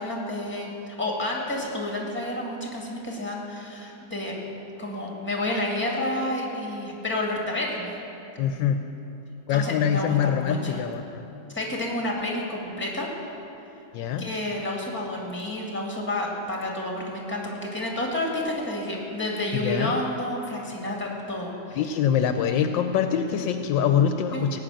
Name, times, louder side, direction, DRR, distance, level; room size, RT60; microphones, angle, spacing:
voice 1, 0.0-4.3 4.8-7.9 9.5-10.8 11.5-13.1 14.2-21.8 24.3-24.5, left 1 dB, 5° left, -1 dB, 2.0 m, -30 dB
voice 2, 8.4-8.8 9.5-11.2 13.9-14.3 19.5-19.9 21.7-24.6, left 8 dB, 75° left, 8 dB, 1.3 m, -24 dB
17.5 x 5.8 x 9.0 m, 2.9 s
omnidirectional pair, 2.1 m